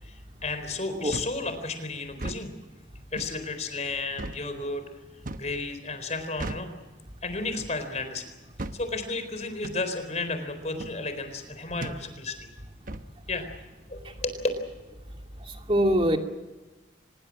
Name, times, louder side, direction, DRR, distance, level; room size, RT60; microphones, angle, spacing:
voice 1, 0.0-2.5 3.1-4.8 5.4-6.7 7.2-8.2 8.7-12.5 13.3-13.5 13.9-14.4, left 3 dB, 40° left, 8 dB, 4.2 m, -33 dB
sound 1, 1.1-1.4 2.1-2.4 3.2-3.4 4.2-4.4 5.2-5.5 6.4-6.7 7.6-7.8 8.6-8.8 9.6-9.8 10.8-11.0 11.8-12.0 12.9-13.1, right 2 dB, 50° right, 1.1 m, -36 dB
voice 2, 15.5-16.2, equal, 30° right, 4 dB, 2.6 m, -23 dB
24.5 x 21.5 x 7.4 m, 1.2 s
head